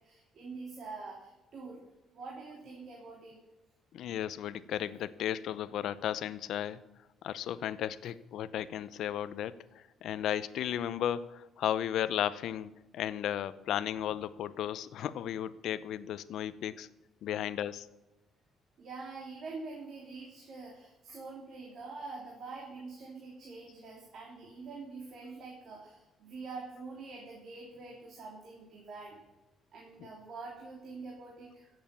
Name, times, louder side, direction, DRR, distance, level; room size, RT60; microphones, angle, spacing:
voice 1, 0.0-1.8 2.1-3.4 17.3-17.4 18.8-29.2 29.7-31.7, right 3 dB, 55° right, -2 dB, 3.4 m, -45 dB
voice 2, 3.9-6.8 7.2-16.9 17.2-17.9 30.0-30.1, left 10 dB, 70° left, 16 dB, 0.7 m, -35 dB
16.0 x 7.9 x 7.0 m, 1.0 s
cardioid pair, 125°, 0 cm